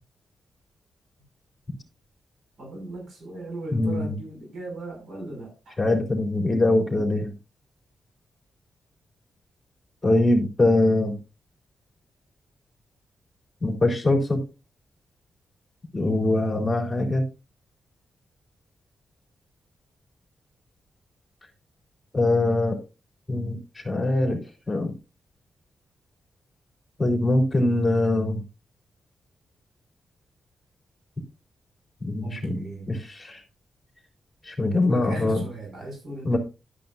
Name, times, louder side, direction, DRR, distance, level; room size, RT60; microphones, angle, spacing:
voice 1, 2.6-5.8 32.2-32.9 34.7-36.4, right 1 dB, 70° right, 0 dB, 6.2 m, -37 dB
voice 2, 3.7-4.2 5.8-7.3 10.0-11.2 13.6-14.4 15.9-17.2 22.1-22.8 23.3-23.6 23.8-24.4 24.7-24.9 27.0-28.4 32.0-32.6 32.9-33.4 34.5-35.4 36.2-36.4, left 2 dB, 10° left, 1 dB, 3.9 m, -22 dB
12.0 x 10.5 x 2.6 m, 0.29 s
wide cardioid pair, 140°, 0 cm